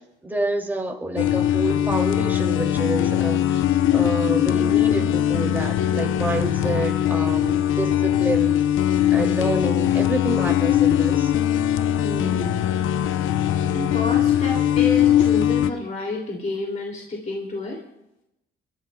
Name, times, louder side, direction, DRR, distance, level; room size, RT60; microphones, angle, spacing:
voice 1, 0.2-8.5 9.1-11.3, right 2 dB, 10° right, 1 dB, 2.5 m, -28 dB
sound 1, 1.2-15.7, left 11 dB, 85° left, 0.7 m, -21 dB
voice 2, 12.0-12.7 13.7-17.8, left 2 dB, 40° left, -1 dB, 2.6 m, -30 dB
28.0 x 13.0 x 2.3 m, 0.86 s
cardioid pair, 90°, 20 cm